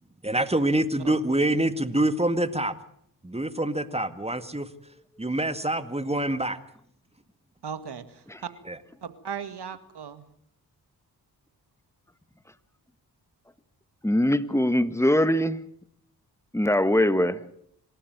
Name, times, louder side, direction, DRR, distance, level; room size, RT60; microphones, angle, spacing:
voice 1, 0.2-2.8 3.2-4.7 5.2-6.6 8.7-8.8, right 1 dB, 15° right, 11 dB, 2.0 m, -26 dB
voice 2, 7.6-8.5 9.0-10.3, right 7 dB, 75° right, 11 dB, 2.1 m, -37 dB
voice 3, 14.0-15.6 16.5-17.4, left 1 dB, 5° left, 13 dB, 1.7 m, -22 dB
27.0 x 12.5 x 9.5 m, 0.69 s
cardioid pair, 55°, 40 cm